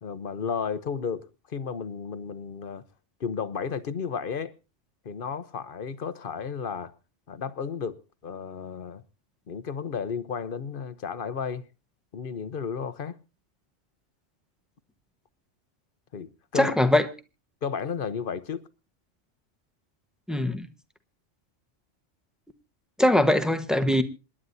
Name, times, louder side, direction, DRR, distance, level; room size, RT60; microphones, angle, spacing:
voice 1, 0.0-2.8 3.2-4.5 5.0-6.9 7.3-9.0 9.5-11.6 12.1-13.2 16.1-16.7 17.6-18.7, left 6 dB, 50° left, 1.0 m, -33 dB
voice 2, 16.5-17.1 20.3-20.7 23.0-24.0, left 1 dB, ahead, 1.0 m, -21 dB
26.5 x 11.0 x 2.7 m
omnidirectional pair, 1.3 m